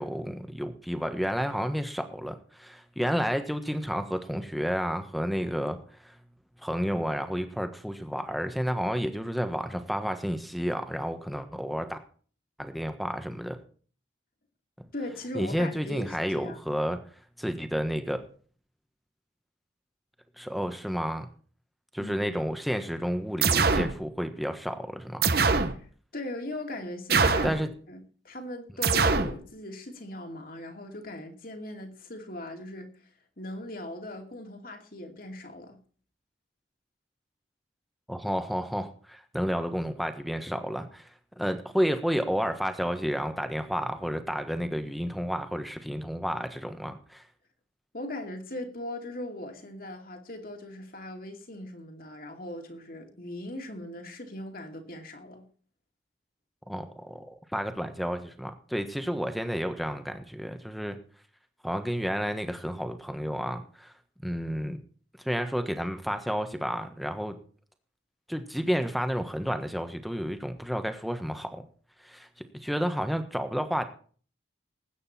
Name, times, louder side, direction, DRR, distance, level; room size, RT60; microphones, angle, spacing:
voice 1, 0.0-5.8 6.0-6.2 6.6-12.0 12.6-13.6 15.3-17.0 17.4-18.2 20.4-21.3 21.9-25.2 27.4-27.7 38.1-41.1 41.4-47.2 56.7-61.0 61.6-63.9 64.2-64.8 65.2-67.4 68.3-71.6 72.0-72.3 72.5-73.8, equal, ahead, 1.3 m, -31 dB
voice 2, 14.9-16.6 22.0-22.2 25.6-25.9 26.1-32.9 33.4-35.8 47.9-55.4, left 1 dB, 50° left, 2.5 m, -39 dB
sound 1, 23.4-23.9 25.2-25.8 27.1-27.6 28.8-29.3, right 4 dB, 55° right, 1.2 m, -23 dB
19.5 x 9.2 x 4.3 m
head